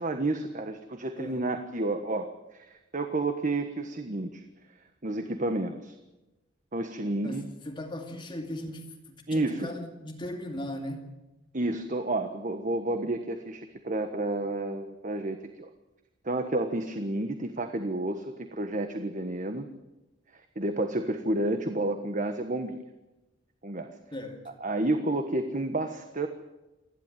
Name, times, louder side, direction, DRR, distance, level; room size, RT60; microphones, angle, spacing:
voice 1, 0.0-4.4 5.0-5.9 6.7-7.5 9.3-9.7 11.5-15.7 16.2-19.7 20.3-22.8 23.6-23.9 24.6-26.3, right 2 dB, 40° right, 1.4 m, -30 dB
voice 2, 1.1-1.5 7.2-11.1 24.1-24.5, left 1 dB, 25° left, 2.4 m, -38 dB
28.5 x 12.0 x 9.1 m
head